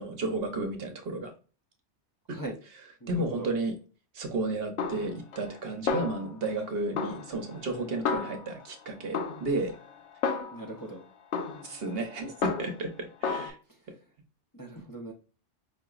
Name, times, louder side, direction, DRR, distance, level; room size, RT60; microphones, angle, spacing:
voice 1, 0.0-1.3 3.1-3.7 4.1-9.7 11.6-13.6, right 2 dB, 60° right, 5 dB, 1.0 m, -32 dB
voice 2, 3.0-3.5 10.5-11.0 13.7-14.0 14.5-15.1, right 2 dB, 20° left, -1 dB, 0.6 m, -40 dB
Snare drum, 4.8-5.6 5.9-6.6 7.0-8.7 9.1-10.8 11.3-12.9 13.2-13.5, left 5 dB, 80° left, 1.0 m, -33 dB
4.9 x 2.9 x 2.4 m, 0.37 s
omnidirectional pair, 1.2 m